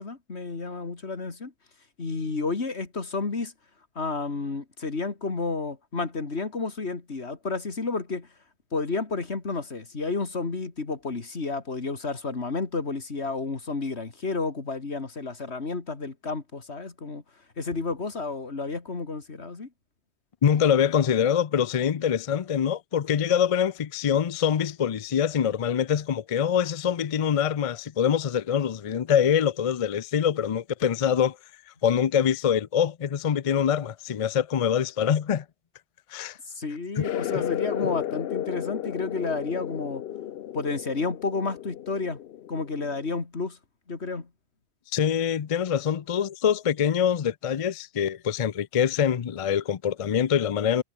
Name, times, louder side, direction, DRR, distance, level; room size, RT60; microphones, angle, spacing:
voice 1, 0.0-1.5 2.0-3.5 4.0-8.3 8.7-17.2 17.6-19.7 36.5-40.0 40.5-42.2 42.5-43.6 43.9-44.3, left 3 dB, 85° left, 2.8 m, -31 dB
voice 2, 20.4-31.4 31.8-35.4 36.1-36.4 37.0-37.1 44.9-50.8, left 8 dB, 45° left, 0.5 m, -24 dB
sound 1, 37.0-43.2, left 11 dB, 70° left, 0.8 m, -33 dB
omnidirectional pair, 1.1 m